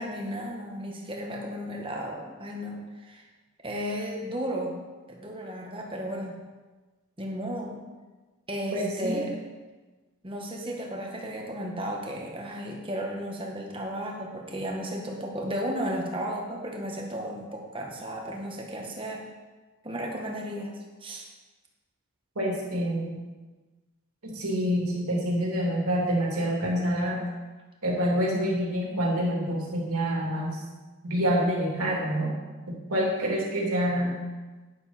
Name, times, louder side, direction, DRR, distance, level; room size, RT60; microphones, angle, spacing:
voice 1, 0.0-3.2 3.6-4.8 5.1-6.4 7.2-7.8 8.5-9.4 10.2-19.2 19.8-21.3, equal, 25° right, 0 dB, 1.5 m, -34 dB
voice 2, 8.7-9.2 22.3-23.2 24.2-27.2 27.8-30.6 31.0-32.3 32.7-34.2, equal, 85° right, -3 dB, 3.0 m, -27 dB
9.9 x 9.7 x 4.4 m, 1.3 s
head